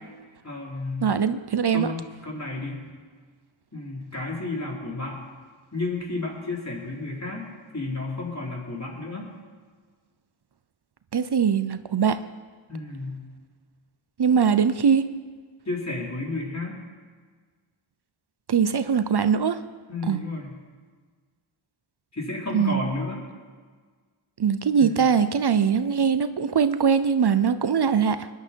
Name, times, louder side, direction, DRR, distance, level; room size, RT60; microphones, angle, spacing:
voice 1, 0.4-1.2 1.7-2.8 3.7-5.2 5.7-7.5 7.7-9.3 12.7-13.2 15.7-16.8 19.9-20.5 22.1-23.2 24.8-25.0, left 2 dB, 35° left, -3 dB, 4.5 m, -32 dB
voice 2, 1.0-1.9 11.1-12.2 14.2-15.0 18.5-19.6 20.1-20.2 22.5-22.8 24.4-28.3, right 7 dB, 50° right, 12 dB, 0.8 m, -21 dB
21.0 x 11.5 x 4.7 m, 1.5 s
cardioid pair, 45°, 50 cm